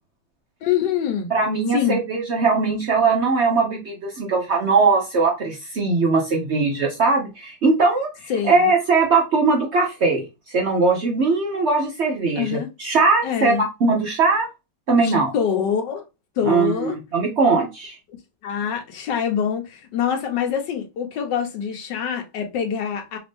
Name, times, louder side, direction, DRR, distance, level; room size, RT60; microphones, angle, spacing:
voice 1, 0.6-1.3 1.7-2.0 8.3-8.7 12.4-12.7 13.2-13.7 15.0-16.1 16.4-17.0 18.4-23.2, left 8 dB, 90° left, 1.5 m, -25 dB
voice 2, 1.3-14.5 14.9-15.3 16.5-18.0, right 4 dB, 60° right, 0.7 m, -20 dB
3.5 x 2.5 x 3.4 m
omnidirectional pair, 1.8 m